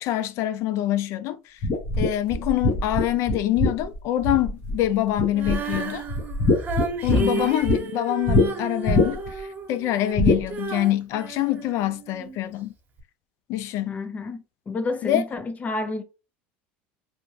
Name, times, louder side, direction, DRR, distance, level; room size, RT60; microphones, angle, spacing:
voice 1, 0.0-1.6 2.0-6.1 7.0-12.7 13.5-14.0 15.0-15.2, left 13 dB, 60° left, 0.4 m, -25 dB
sound 1, 1.6-4.8 5.2-5.8 6.1-7.8 8.3-8.4 8.8-9.4 10.1-10.4, left 2 dB, 40° left, 1.2 m, -22 dB
Female singing, 5.3-12.4 13.0-13.1, right 3 dB, 35° right, 1.2 m, -32 dB
voice 2, 7.1-7.6 13.9-16.0, left 3 dB, 25° left, 0.7 m, -30 dB
3.4 x 2.5 x 3.2 m
supercardioid pair, 105°, 6 cm